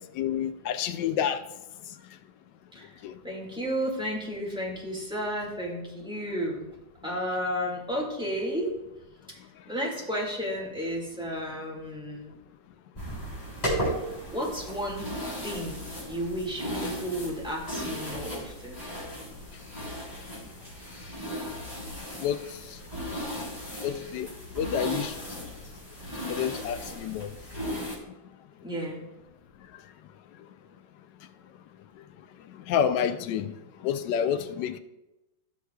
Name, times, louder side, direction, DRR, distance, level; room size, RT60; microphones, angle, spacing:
voice 1, 0.2-1.4 3.0-3.1 22.2-22.4 23.8-24.3 24.6-25.1 26.3-27.3 32.7-33.5 33.8-34.8, left 8 dB, 75° left, 10 dB, 1.1 m, -28 dB
voice 2, 2.7-6.7 7.0-8.8 9.3-9.4 9.6-12.3 14.0-15.1 15.4-15.8 16.1-18.8 28.6-29.1, equal, 5° right, -3 dB, 1.7 m, -33 dB
sound 1, 12.9-28.0, equal, 20° left, 3.6 m, -36 dB
16.0 x 6.3 x 2.3 m, 0.96 s
omnidirectional pair, 2.2 m